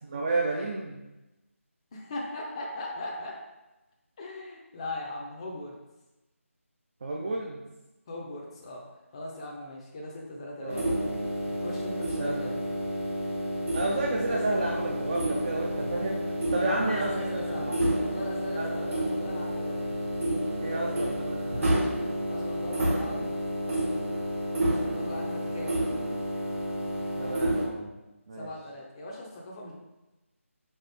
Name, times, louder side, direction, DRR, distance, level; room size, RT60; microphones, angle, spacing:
voice 1, 0.0-1.0 7.0-7.6 10.6-10.9 12.2-12.5 13.7-16.2 16.5-17.9 18.5-18.9 20.6-21.7 27.2-27.9 28.3-28.5, right 2 dB, 30° right, -1 dB, 0.4 m, -31 dB
voice 2, 1.9-3.5 4.2-5.8 8.1-8.9 9.1-11.0 11.6-12.6 16.6-17.7 17.9-19.8 20.6-21.1 22.3-23.3 24.6-25.8 28.4-29.7, left 1 dB, 25° left, -2 dB, 0.5 m, -39 dB
sound 1, 10.7-27.7, equal, 70° right, 1.5 m, -30 dB
4.3 x 3.6 x 3.4 m, 1.0 s
figure-of-eight pair, 160°, 8 cm